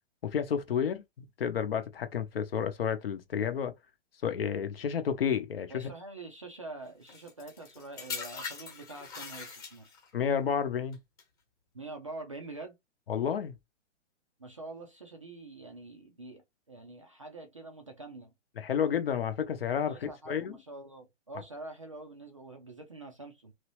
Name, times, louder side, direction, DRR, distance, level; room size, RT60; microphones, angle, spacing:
voice 1, 0.2-3.7 4.2-5.9 10.1-11.0 13.1-13.5 18.6-20.6, left 7 dB, 50° left, 0.8 m, -31 dB
voice 2, 5.7-9.9 11.7-12.8 14.4-18.3 19.9-23.5, right 2 dB, 30° right, 0.4 m, -45 dB
sound 1, 7.1-10.1 10.9-11.2, left 5 dB, 20° left, 1.1 m, -42 dB
3.1 x 2.7 x 3.0 m
hypercardioid pair, 170°, 36 cm